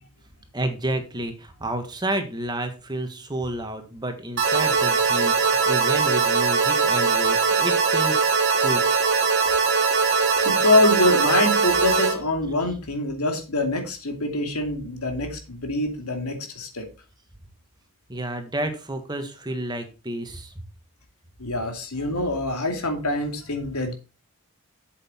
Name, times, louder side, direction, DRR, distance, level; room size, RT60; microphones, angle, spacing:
voice 1, 0.5-8.3 8.6-8.8 18.1-20.5, right 1 dB, 20° right, 7 dB, 1.4 m, -30 dB
sound 1, 4.4-12.1, right 5 dB, 50° right, 2.1 m, -21 dB
voice 2, 10.4-16.9 21.4-23.9, left 2 dB, 90° left, 4 dB, 2.6 m, -24 dB
7.9 x 7.8 x 4.3 m, 0.31 s
head